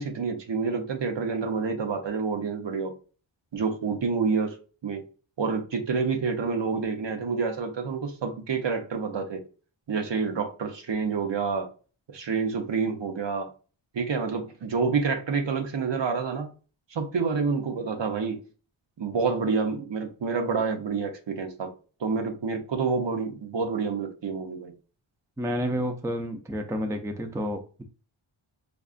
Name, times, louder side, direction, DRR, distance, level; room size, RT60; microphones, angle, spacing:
voice 1, 0.0-2.9 3.5-4.6 4.8-5.0 5.4-9.4 9.9-11.7 12.1-13.5 13.9-16.5 16.9-18.4 19.0-21.7 22.0-24.7, right 5 dB, 60° right, 0.8 m, -28 dB
voice 2, 25.4-27.8, equal, 5° right, 0.4 m, -30 dB
5.1 x 2.3 x 2.4 m
wide cardioid pair, 95°, 50 cm